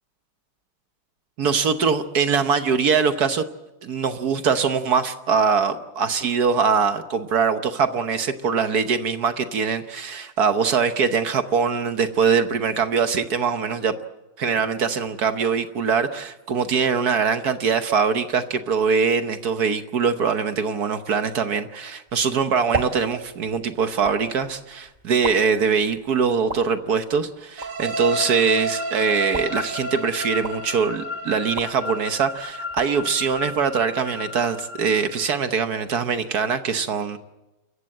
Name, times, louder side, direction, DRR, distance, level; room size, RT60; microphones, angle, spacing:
voice 1, 1.4-3.4 3.8-13.9 14.4-37.2, right 6 dB, 55° right, 9 dB, 1.3 m, -22 dB
sound 1, 22.1-34.2, right 3 dB, 20° right, 1.3 m, -37 dB
sound 2, 27.6-35.4, equal, 85° right, 3.0 m, -31 dB
28.5 x 15.0 x 7.7 m, 1.0 s
omnidirectional pair, 2.3 m